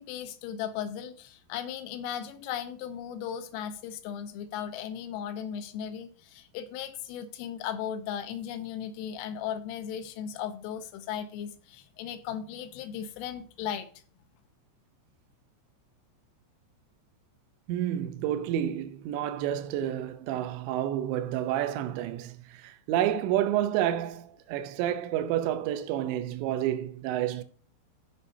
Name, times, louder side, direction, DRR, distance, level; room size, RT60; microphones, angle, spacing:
voice 1, 0.0-13.9, left 9 dB, 85° left, 3.4 m, -36 dB
voice 2, 17.7-22.4 22.6-27.4, right 11 dB, 80° right, 2.7 m, -29 dB
14.5 x 5.4 x 2.8 m
omnidirectional pair, 5.7 m